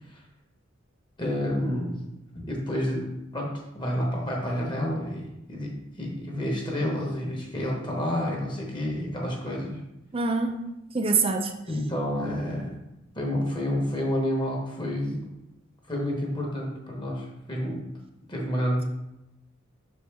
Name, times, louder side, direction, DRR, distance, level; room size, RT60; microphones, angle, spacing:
voice 1, 1.2-2.0 2.3-9.8 11.7-12.8 13.1-15.2 15.9-17.8 18.3-18.8, equal, 25° left, -1 dB, 1.1 m, -29 dB
voice 2, 10.1-10.5 10.9-11.5, right 4 dB, 25° right, 5 dB, 0.5 m, -24 dB
6.1 x 4.4 x 3.4 m, 0.91 s
head